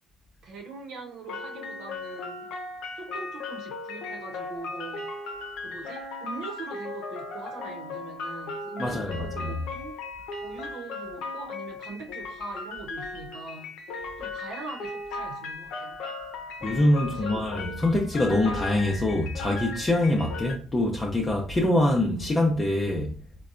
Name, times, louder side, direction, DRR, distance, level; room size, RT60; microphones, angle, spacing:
voice 1, 0.4-2.5 2.9-5.0 5.6-10.0 10.4-13.7 14.2-16.0 17.0-17.4, right 4 dB, 70° right, 0.9 m, -42 dB
sound 1, 1.3-20.6, left 3 dB, 70° left, 0.7 m, -37 dB
voice 2, 8.8-9.5 16.6-23.1, left 1 dB, 25° left, 0.7 m, -24 dB
4.0 x 2.2 x 2.5 m
hypercardioid pair, 65°, 0 cm